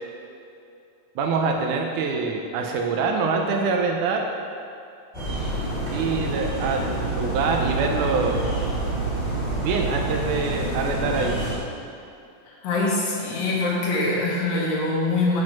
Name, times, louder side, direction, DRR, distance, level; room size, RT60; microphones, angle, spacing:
voice 1, 1.2-4.2 5.9-8.4 9.6-11.4, right 4 dB, 80° right, 2 dB, 2.1 m, -25 dB
sound 1, 5.1-11.5, right 2 dB, 15° right, 1.6 m, -27 dB
voice 2, 12.6-15.4, left 2 dB, 85° left, -3 dB, 3.2 m, -23 dB
9.4 x 4.9 x 5.9 m, 2.5 s
omnidirectional pair, 3.8 m